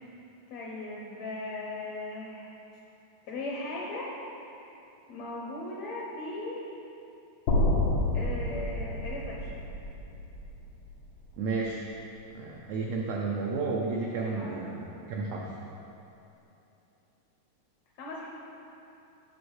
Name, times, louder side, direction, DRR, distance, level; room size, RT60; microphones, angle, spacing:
voice 1, 0.5-2.5 3.3-4.1 5.1-6.7 8.1-9.6 14.2-14.7 18.0-18.3, left 2 dB, 70° left, -3 dB, 1.8 m, -38 dB
sound 1, 7.5-11.7, left 1 dB, 85° left, 2.6 m, -29 dB
voice 2, 11.4-11.8 12.3-15.5, right 4 dB, 80° right, -2 dB, 1.6 m, -32 dB
8.0 x 6.1 x 4.7 m, 2.9 s
omnidirectional pair, 3.7 m